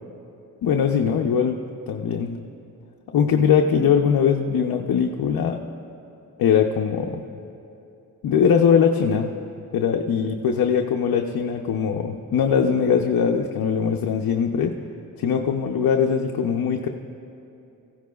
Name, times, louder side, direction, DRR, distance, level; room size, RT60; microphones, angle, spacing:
voice 1, 0.6-1.6 1.9-2.4 3.1-5.6 6.4-7.2 8.2-9.3 9.7-14.7 15.2-16.9, left 7 dB, 80° left, 1 dB, 0.7 m, -21 dB
17.5 x 15.5 x 2.3 m, 2.7 s
cardioid pair, 90°, 35 cm